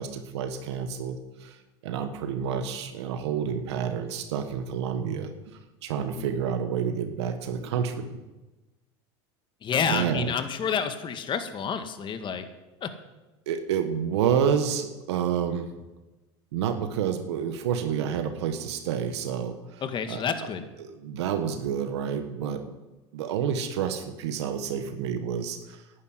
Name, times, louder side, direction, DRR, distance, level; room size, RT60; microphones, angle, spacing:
voice 1, 0.0-1.6 1.8-8.2 9.8-10.3 13.5-15.7 16.5-20.5 20.8-22.7 23.1-25.8, right 8 dB, 85° right, 7 dB, 1.6 m, -29 dB
voice 2, 9.6-12.4 12.8-12.9 19.8-20.7, left 7 dB, 35° left, 8 dB, 1.9 m, -29 dB
11.0 x 9.7 x 9.8 m, 1.1 s
supercardioid pair, 110°, 14 cm